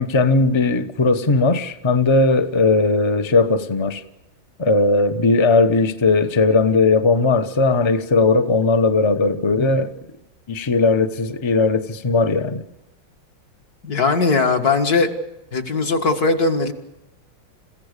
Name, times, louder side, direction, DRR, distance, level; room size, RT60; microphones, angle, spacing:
voice 1, 0.0-4.0 4.6-9.9 10.5-12.6, left 3 dB, 25° left, 0.6 m, -18 dB
voice 2, 13.8-15.1 15.5-16.7, left 4 dB, 50° left, 2.2 m, -19 dB
29.5 x 16.0 x 6.7 m
omnidirectional pair, 2.2 m